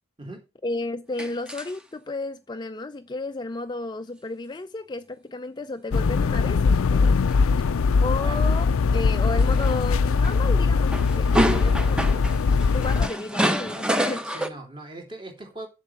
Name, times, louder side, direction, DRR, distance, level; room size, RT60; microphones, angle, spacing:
voice 1, 0.6-7.7 8.0-12.3 12.7-14.3, left 2 dB, 20° left, 0.4 m, -33 dB
sound 1, 1.2-1.8 7.3-7.4 8.5-8.7 9.1-9.8 10.2-10.5 10.7-14.5, equal, 5° right, 0.8 m, -27 dB
sound 2, 5.9-13.1, left 4 dB, 85° left, 0.4 m, -21 dB
voice 2, 14.2-15.7, right 2 dB, 25° right, 3.2 m, -40 dB
8.2 x 7.5 x 5.9 m
head